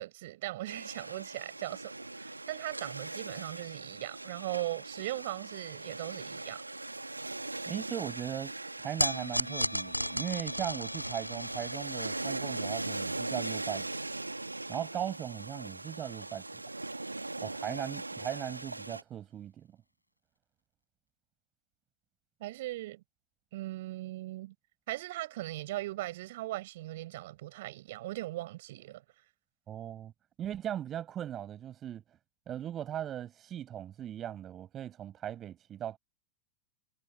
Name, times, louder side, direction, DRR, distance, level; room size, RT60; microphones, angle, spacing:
voice 1, 0.0-6.6 22.4-23.0 23.5-24.5 24.9-29.0, right 17 dB, 55° right, 7.2 m, -39 dB
sound 1, 0.7-19.0, right 2 dB, 85° right, 2.0 m, -40 dB
voice 2, 7.7-13.9 14.7-16.4 17.4-19.7 29.7-30.1 30.4-32.0 32.5-36.0, right 10 dB, 30° right, 6.8 m, -38 dB
sound 2, 9.0-15.4, equal, 90° left, 4.9 m, -37 dB
figure-of-eight pair, 90°, 0 cm